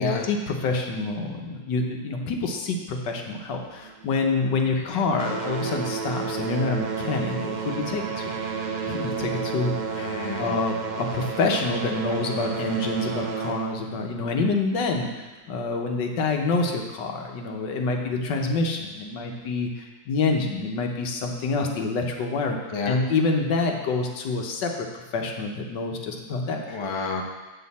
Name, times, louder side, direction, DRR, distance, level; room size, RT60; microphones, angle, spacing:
voice 1, 0.0-8.3 8.9-10.1 10.4-22.6 22.9-26.8, left 3 dB, 80° left, 2 dB, 1.6 m, -27 dB
Ship Horn, 3.3-4.7 5.0-15.3 16.1-16.2 16.9-17.0 17.6-17.7, right 5 dB, 55° right, 0.5 m, -32 dB
voice 2, 10.0-10.6 22.7-23.0 26.7-27.2, left 4 dB, 40° left, 2 dB, 0.4 m, -30 dB
8.0 x 7.6 x 4.2 m, 1.2 s
omnidirectional pair, 1.9 m